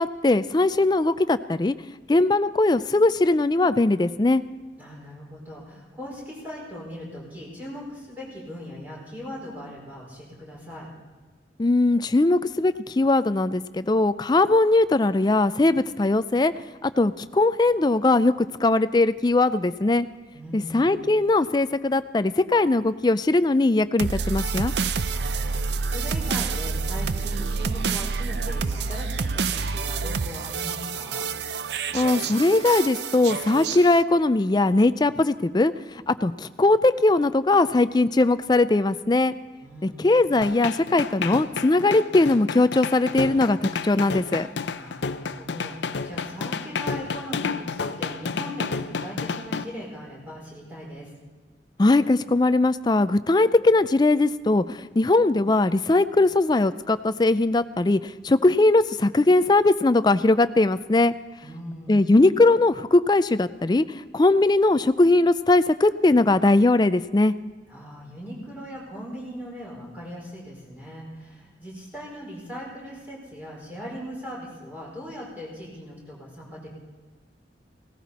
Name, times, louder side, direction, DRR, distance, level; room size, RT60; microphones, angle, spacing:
voice 1, 0.0-1.8 2.1-4.4 11.6-16.5 16.8-20.1 20.5-24.7 31.9-39.3 39.8-44.5 51.8-61.1 61.9-67.3, left 2 dB, 25° left, 13 dB, 0.4 m, -20 dB
voice 2, 4.8-10.9 20.3-20.9 25.1-31.3 39.6-40.3 44.8-51.1 61.4-62.1 67.7-76.7, equal, 10° right, -5 dB, 5.1 m, -39 dB
sound 1, 24.0-34.0, right 4 dB, 65° right, 0.5 m, -28 dB
sound 2, 40.4-49.6, left 5 dB, 75° left, 0.6 m, -30 dB
17.5 x 14.5 x 4.2 m, 1.4 s
head